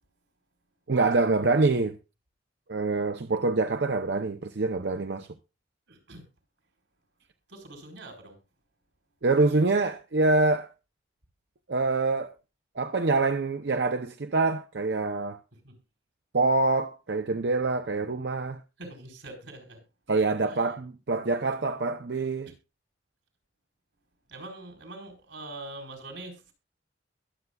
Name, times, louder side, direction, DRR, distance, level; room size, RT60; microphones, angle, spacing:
voice 1, 0.9-2.0 2.7-5.3 9.2-10.7 11.7-12.4 12.8-15.4 16.3-18.6 20.1-22.5, right 3 dB, 65° right, 0.6 m, -25 dB
voice 2, 5.9-6.3 7.5-8.4 15.6-15.8 18.8-19.8 20.5-20.6 24.3-26.5, right 2 dB, 90° right, 4.8 m, -43 dB
22.0 x 7.9 x 2.4 m
head